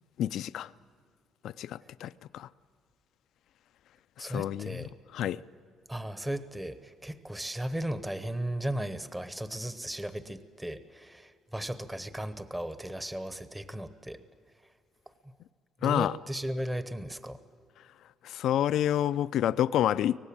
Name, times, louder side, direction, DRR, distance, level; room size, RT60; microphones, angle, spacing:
voice 1, 0.2-0.7 1.4-2.5 4.2-5.4 15.8-16.2 18.2-20.2, left 11 dB, 65° left, 14 dB, 0.5 m, -29 dB
voice 2, 4.2-4.9 5.2-5.4 5.9-14.2 15.8-17.4, right 1 dB, 10° right, 12 dB, 0.9 m, -36 dB
24.5 x 18.5 x 8.7 m, 2.2 s
cardioid pair, 150°, 0 cm